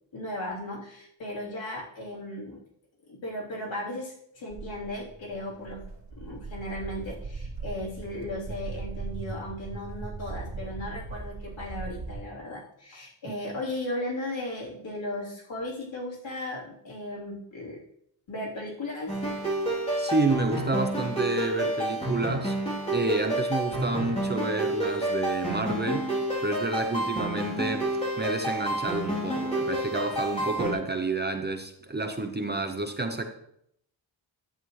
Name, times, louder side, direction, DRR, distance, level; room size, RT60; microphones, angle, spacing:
voice 1, 0.1-2.6 3.1-5.8 6.2-17.8 18.3-19.2 26.9-27.2, left 1 dB, 70° left, -5 dB, 3.5 m, -36 dB
Walk footsteps, 4.5-12.2, right 3 dB, 65° right, 2.0 m, -39 dB
sound 1, 19.1-30.7, right 1 dB, 15° left, 3.0 m, -29 dB
voice 2, 20.0-22.6 22.9-26.1 26.4-27.9 28.2-33.2, right 3 dB, 20° right, 5 dB, 0.6 m, -29 dB
11.0 x 8.2 x 3.1 m, 0.73 s
wide cardioid pair, 165°, 47 cm